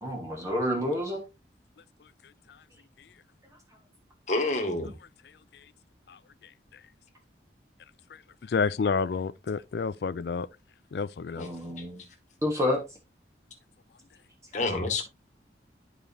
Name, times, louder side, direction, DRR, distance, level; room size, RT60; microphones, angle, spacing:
voice 1, 0.0-1.2 11.4-12.0 12.4-12.8, left 1 dB, 20° right, 1.4 m, -29 dB
voice 2, 4.3-4.9 14.5-15.0, left 2 dB, 45° left, 1.7 m, -27 dB
voice 3, 8.5-10.5 10.9-11.5, left 5 dB, 65° left, 0.4 m, -29 dB
10.5 x 5.0 x 2.7 m
head